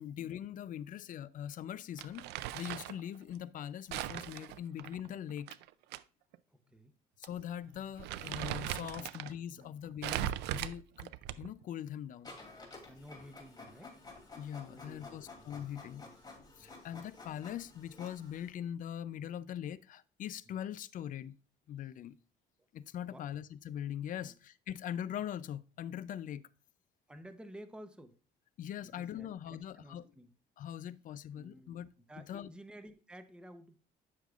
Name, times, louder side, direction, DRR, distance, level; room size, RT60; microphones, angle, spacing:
voice 1, 0.0-5.5 7.2-11.1 11.4-12.4 14.4-16.1 16.6-21.4 21.7-22.2 22.7-26.4 28.6-30.0 30.6-31.9 32.3-32.5, left 10 dB, 50° left, 0.5 m, -42 dB
Crumpling crinkling, 2.0-3.0 3.9-6.0 6.3-6.4 7.2-7.4 7.8-9.3 10.0-11.6, right 13 dB, 85° right, 0.4 m, -39 dB
voice 2, 6.5-6.9 9.0-9.1 9.6-9.7 12.6-14.0 14.6-15.5 15.9-16.1 16.6-16.8 20.5-20.6 23.1-23.3 24.1-24.3 27.1-28.2 28.8-30.3 31.4-33.8, equal, 5° right, 0.7 m, -53 dB
Printer, 12.2-18.5, left 3 dB, 25° left, 2.7 m, -52 dB
9.1 x 6.5 x 2.4 m
cardioid pair, 110°, 17 cm